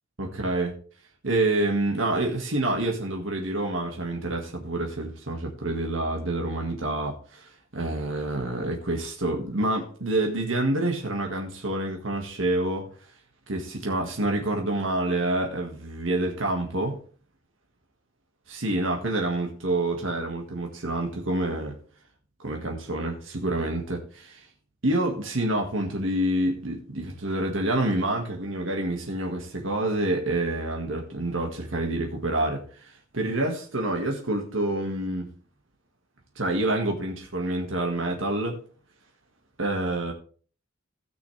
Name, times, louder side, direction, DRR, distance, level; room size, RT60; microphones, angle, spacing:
voice 1, 0.2-0.7 1.2-12.9 13.5-17.0 18.5-21.8 22.4-24.5 24.8-35.3 36.4-38.6 39.6-40.1, right 1 dB, 75° right, 1 dB, 1.8 m, -27 dB
16.5 x 6.3 x 3.3 m, 0.42 s
head